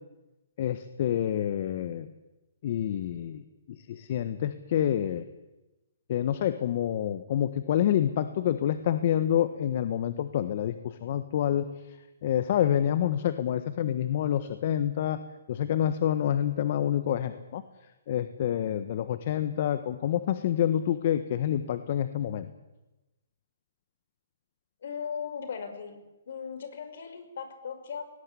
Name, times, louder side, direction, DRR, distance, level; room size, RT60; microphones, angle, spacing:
voice 1, 0.6-2.1 2.6-5.2 6.1-15.2 15.5-17.6 18.1-22.5, left 10 dB, 50° left, 11 dB, 1.4 m, -28 dB
voice 2, 18.6-18.9 24.8-26.0 26.3-28.0, left 6 dB, 65° left, 9 dB, 5.7 m, -38 dB
21.0 x 18.5 x 10.0 m, 1.0 s
hypercardioid pair, 155°, 0 cm